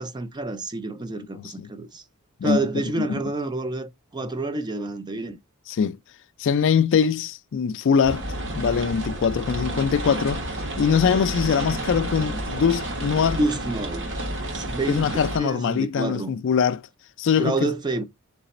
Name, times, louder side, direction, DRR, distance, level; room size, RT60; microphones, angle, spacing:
voice 1, 0.0-2.0 2.4-5.4 13.3-14.1 14.5-15.1 15.4-16.3 17.4-18.0, right 2 dB, 20° right, 0.4 m, -28 dB
voice 2, 1.3-1.7 2.4-2.6 3.1-3.2 5.7-6.0 6.4-8.2 8.5-10.4 10.8-13.4 14.9-16.8 17.2-17.7, left 6 dB, 60° left, 0.4 m, -22 dB
sound 1, 8.0-15.4, right 1 dB, 55° right, 1.4 m, -30 dB
3.9 x 3.3 x 4.0 m
head